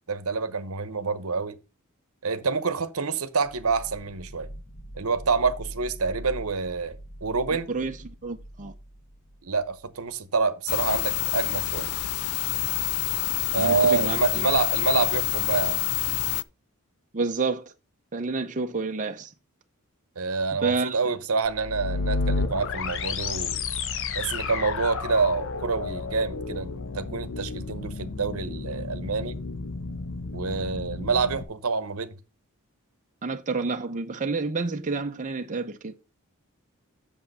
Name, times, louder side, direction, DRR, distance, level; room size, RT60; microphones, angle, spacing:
voice 1, 0.1-1.6 2.2-4.5 5.0-7.7 9.4-11.9 13.5-15.8 20.2-23.6 24.1-29.4 30.3-32.1, right 4 dB, 70° right, 1.0 m, -27 dB
sound 1, 3.4-10.2, right 1 dB, 40° left, 1.2 m, -43 dB
voice 2, 7.7-8.7 13.6-14.5 17.1-17.6 18.1-19.3 20.6-21.0 33.2-35.9, right 4 dB, 35° right, 0.7 m, -29 dB
sound 2, 10.7-16.4, left 14 dB, 85° left, 0.4 m, -27 dB
sound 3, 21.5-31.4, left 4 dB, 60° left, 0.8 m, -32 dB
7.7 x 7.0 x 4.1 m
head